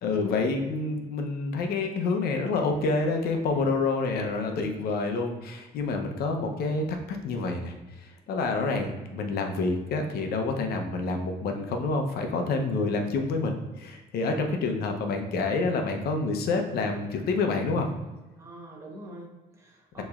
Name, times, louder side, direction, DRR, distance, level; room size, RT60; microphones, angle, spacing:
voice 1, 0.0-17.9 20.0-20.1, left 3 dB, 65° left, 4 dB, 0.8 m, -28 dB
voice 2, 18.4-20.0, equal, 15° right, -1 dB, 1.1 m, -43 dB
6.7 x 3.1 x 2.4 m, 1.2 s
cardioid pair, 110°, 17 cm